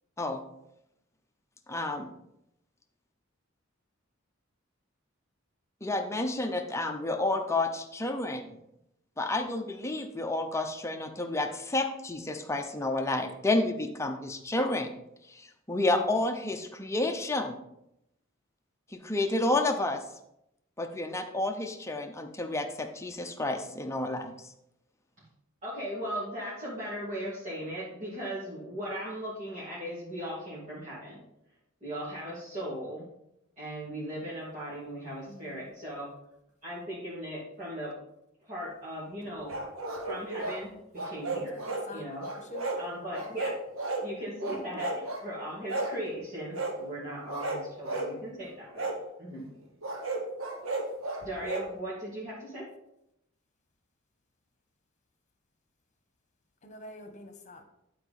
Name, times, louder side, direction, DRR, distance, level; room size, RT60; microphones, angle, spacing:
voice 1, 1.7-2.1 5.8-8.6 9.2-14.9 15.3-17.6 18.9-20.0 20.8-24.3, left 2 dB, 15° left, 5 dB, 0.8 m, -30 dB
voice 2, 25.6-31.2 31.8-33.0 33.6-36.1 36.6-37.9 38.4-39.5 40.1-41.6 41.9-42.3 42.8-43.5 44.0-48.9 49.2-49.5 51.2-52.7, equal, 40° right, -10 dB, 2.7 m, -38 dB
voice 3, 35.3-35.7 41.5-42.1 42.4-42.6 56.6-57.6, left 2 dB, 35° left, 5 dB, 1.3 m, -46 dB
sound 1, 39.5-40.6 40.9-41.9 42.2-42.8 43.1-44.1 44.4-45.2 45.7-46.0 46.5-46.8 47.3-48.1 48.8-49.0 49.8-51.7, right 2 dB, 90° right, 1.3 m, -33 dB
11.0 x 4.8 x 4.2 m, 0.83 s
head